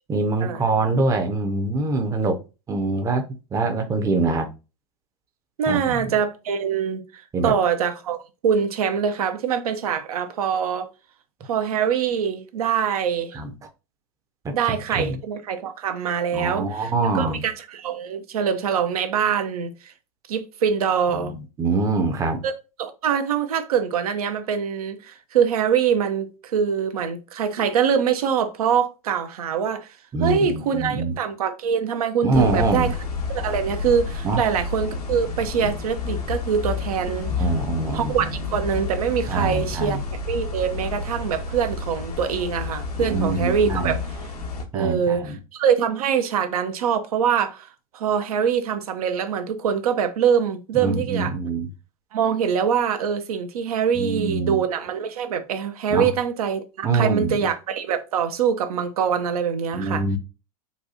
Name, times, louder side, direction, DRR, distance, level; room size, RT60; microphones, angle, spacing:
voice 1, 0.1-2.4 2.7-3.2 3.5-4.5 5.7-6.1 7.3-7.6 13.3-13.5 14.4-15.2 16.3-17.4 21.1-22.4 30.1-31.1 32.2-32.9 34.2-34.4 37.4-38.3 39.3-40.0 43.0-44.0 44.7-45.4 50.8-51.7 54.0-54.6 55.9-56.1 56.8-57.4 59.7-60.2, right 3 dB, 15° right, 0.6 m, -24 dB
voice 2, 5.6-8.2 8.4-10.9 11.4-13.4 14.5-19.9 20.3-21.3 22.4-22.5 22.8-29.9 30.2-32.9 33.3-37.3 37.9-40.0 40.3-44.0 44.7-51.3 52.1-60.0, right 7 dB, 75° right, 0.6 m, -24 dB
sound 1, 32.3-44.6, left 4 dB, 85° left, 0.9 m, -30 dB
4.0 x 2.3 x 2.7 m
hypercardioid pair, 100°, 19 cm